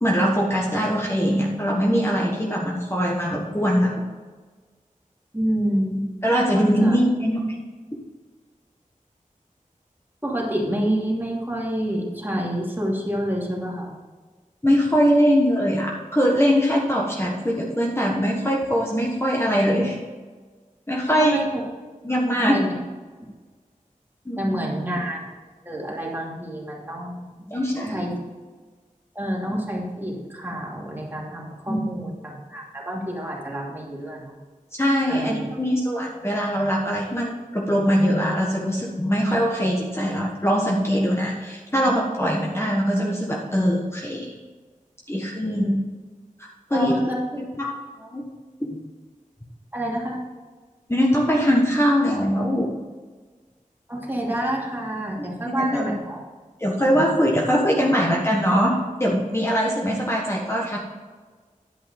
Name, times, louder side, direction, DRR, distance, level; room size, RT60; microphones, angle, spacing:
voice 1, 0.0-4.1 6.2-7.4 14.6-20.0 20.9-21.4 22.0-22.6 24.2-24.6 27.5-28.1 31.7-31.9 34.8-44.3 45.1-45.7 46.4-47.0 47.4-48.2 50.9-52.7 55.5-55.8 56.6-60.8, equal, 20° left, -3 dB, 1.4 m, -22 dB
voice 2, 5.3-6.0 6.5-7.0 10.2-13.9 21.0-21.6 22.4-22.8 24.4-25.2 25.6-27.3 27.9-28.2 29.1-34.4 35.1-35.5 45.4-45.8 46.7-47.4 49.7-50.2 53.9-56.2, right 1 dB, 15° right, -4 dB, 2.7 m, -28 dB
10.5 x 5.4 x 5.3 m, 1.4 s
wide cardioid pair, 55°, 14 cm